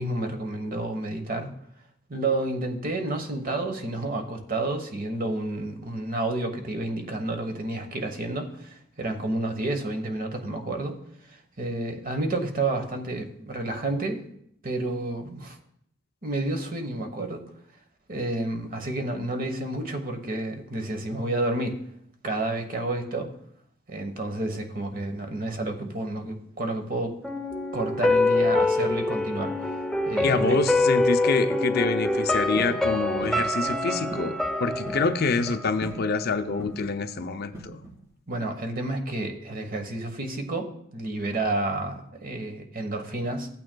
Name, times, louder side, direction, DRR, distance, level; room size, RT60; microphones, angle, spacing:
voice 1, 0.0-1.5 2.1-10.9 11.3-14.2 14.6-15.6 16.2-17.4 18.1-21.8 22.2-23.3 23.9-27.2 27.7-29.8 30.0-30.6 38.3-43.5, right 2 dB, 40° right, 5 dB, 1.1 m, -30 dB
sound 1, 27.2-36.2 36.5-36.6, left 2 dB, ahead, 0.6 m, -25 dB
voice 2, 30.2-37.8, left 4 dB, 50° left, 9 dB, 0.5 m, -26 dB
sound 2, 32.6-32.8 33.2-33.5 34.1-34.4 34.6-35.1 35.8-36.1 36.6-36.9 37.5-38.0, right 1 dB, 15° right, 1.9 m, -39 dB
15.0 x 9.0 x 2.2 m, 0.71 s
head